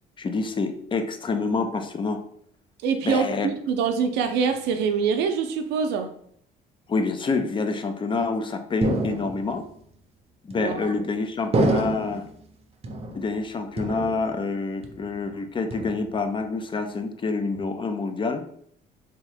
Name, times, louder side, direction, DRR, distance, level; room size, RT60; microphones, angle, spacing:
voice 1, 0.2-2.2 3.0-3.5 6.9-9.6 10.4-12.2 13.1-18.4, left 4 dB, 30° left, 7 dB, 0.5 m, -27 dB
voice 2, 2.8-6.1 10.6-10.9, right 6 dB, 85° right, 6 dB, 0.6 m, -24 dB
sound 1, 8.8-9.7 10.5-11.0 11.5-12.3 12.8-13.5 13.8-14.5 14.8-15.3 15.7-16.3, right 2 dB, 35° right, 0.7 m, -28 dB
3.6 x 3.0 x 3.4 m, 0.65 s
cardioid pair, 110°, 17 cm